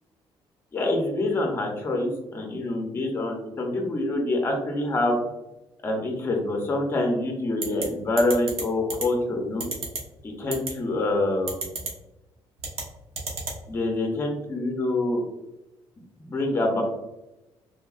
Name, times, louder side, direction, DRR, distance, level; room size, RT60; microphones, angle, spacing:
voice 1, 0.7-5.2 5.8-9.6 10.2-11.6 13.7-15.2 16.2-16.8, left 2 dB, 25° left, 1 dB, 0.5 m, -26 dB
sound 1, 7.6-7.8 8.2-8.6 8.9-9.0 9.6-10.0 10.5-10.7 11.5-11.9 12.6-12.8 13.2-13.6, right 3 dB, 80° right, 0.8 m, -30 dB
3.3 x 2.2 x 2.3 m, 0.97 s
cardioid pair, 160°, 10 cm